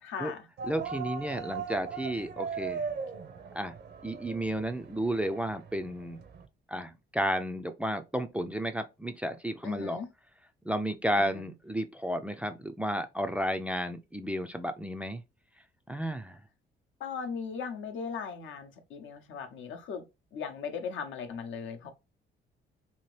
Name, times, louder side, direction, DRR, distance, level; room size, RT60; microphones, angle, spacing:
voice 1, 0.0-0.5 9.6-10.1 11.2-11.4 17.0-20.0 20.3-21.9, left 6 dB, 75° left, 0.7 m, -38 dB
sound 1, 0.6-6.5, right 6 dB, 60° right, 0.6 m, -39 dB
voice 2, 0.7-2.8 3.5-3.8 4.0-6.2 6.7-10.0 10.7-15.2 15.9-16.4, equal, 5° right, 0.3 m, -32 dB
2.8 x 2.5 x 3.1 m
cardioid pair, 90°, 20 cm